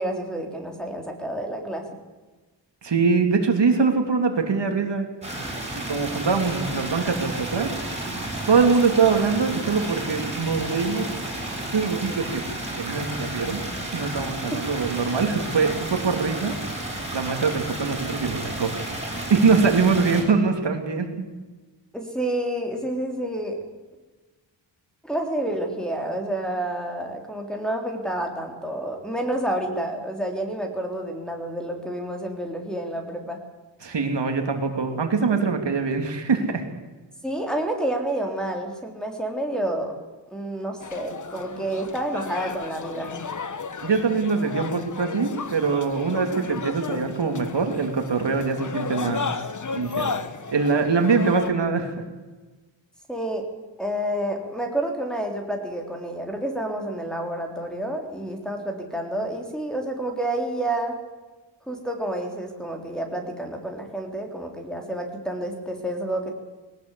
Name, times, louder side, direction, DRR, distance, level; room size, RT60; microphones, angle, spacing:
voice 1, 0.0-1.9 21.9-23.6 25.0-33.4 37.2-40.0 40.3-43.1 53.1-53.5 53.8-60.9 61.7-66.3, right 1 dB, ahead, 0 dB, 3.6 m, -29 dB
voice 2, 2.8-5.1 5.7-7.7 8.5-11.1 11.7-12.4 12.8-13.6 13.9-16.5 17.1-18.7 19.3-21.3 33.8-36.6 43.8-49.4 49.7-50.1 50.5-51.9, right 5 dB, 65° right, 5 dB, 2.9 m, -23 dB
sound 1, 5.2-20.2, right 1 dB, 15° right, 7.3 m, -32 dB
sound 2, 40.8-51.5, left 5 dB, 40° left, 1.3 m, -33 dB
21.0 x 19.0 x 8.4 m, 1.2 s
wide cardioid pair, 150°, 46 cm